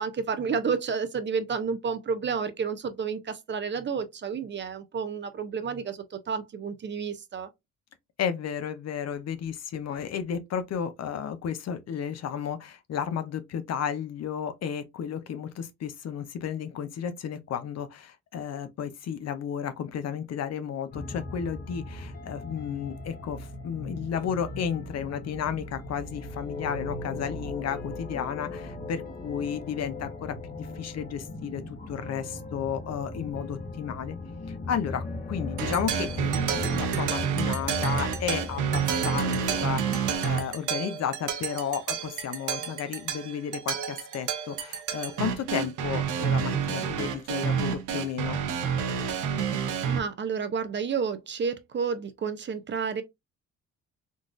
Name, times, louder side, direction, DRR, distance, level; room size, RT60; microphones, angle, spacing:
voice 1, 0.0-7.5 49.9-53.0, right 6 dB, 40° right, 0.6 m, -30 dB
voice 2, 8.2-34.2 34.5-48.4, left 8 dB, 55° left, 0.6 m, -33 dB
sound 1, 20.9-40.2, left 2 dB, 30° left, 0.9 m, -38 dB
sound 2, 35.6-50.0, right 7 dB, 80° right, 0.8 m, -29 dB
3.9 x 2.4 x 2.4 m
cardioid pair, 90°, 30 cm